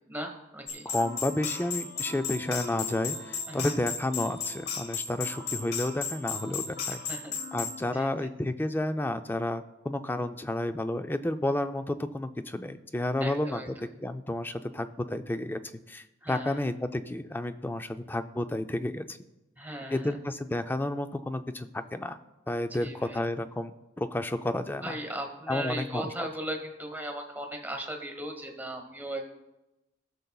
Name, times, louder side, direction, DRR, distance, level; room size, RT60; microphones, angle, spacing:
voice 1, 0.1-0.9 3.5-3.7 6.9-7.3 7.9-8.3 13.2-13.7 16.2-16.6 19.6-20.2 22.8-23.2 24.8-29.3, right 1 dB, 10° right, 3 dB, 1.3 m, -37 dB
sound 1, 0.7-7.8, left 6 dB, 60° left, 0.9 m, -35 dB
voice 2, 0.9-7.0 7.5-15.6 15.9-19.2 19.9-22.2 22.5-25.0 25.5-26.3, left 1 dB, 10° left, 9 dB, 0.4 m, -31 dB
19.5 x 6.7 x 2.3 m, 0.97 s
head